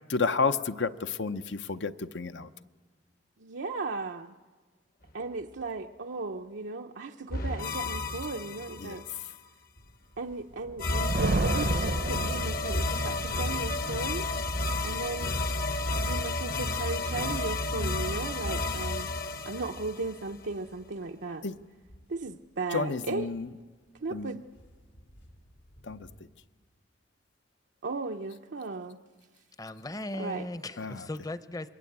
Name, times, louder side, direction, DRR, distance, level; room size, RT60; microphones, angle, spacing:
voice 1, 0.1-2.5 8.8-9.0 17.8-17.9 21.4-21.5 22.7-23.5 24.1-24.3 25.9-26.0 30.8-31.0, left 4 dB, 70° left, 0.8 m, -30 dB
voice 2, 3.4-4.3 5.1-9.0 10.2-14.3 14.8-15.3 15.9-19.1 19.5-21.5 22.1-23.3 24.0-24.4 27.8-29.0 30.1-30.5, right 3 dB, 85° right, 0.8 m, -36 dB
sound 1, 7.3-9.2 10.8-20.5, left 2 dB, 50° left, 1.1 m, -31 dB
sound 2, 9.8-26.2, equal, 90° left, 4.1 m, -52 dB
Thunder, 10.6-13.1, right 2 dB, 55° right, 0.7 m, -30 dB
voice 3, 29.6-31.7, left 1 dB, 20° left, 0.7 m, -37 dB
27.5 x 22.0 x 8.7 m
head